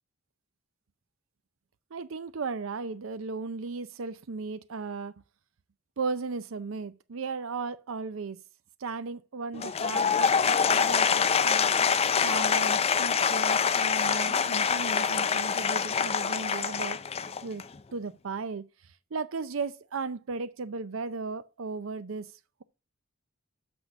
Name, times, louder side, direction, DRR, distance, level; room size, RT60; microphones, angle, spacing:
voice 1, 1.9-5.1 6.0-8.4 8.8-11.7 12.2-17.0 17.4-17.6 17.9-22.6, right 4 dB, 90° right, 0.6 m, -36 dB
Applause / Crowd, 9.5-17.7, left 6 dB, 30° left, 0.5 m, -25 dB
6.7 x 6.2 x 5.8 m
head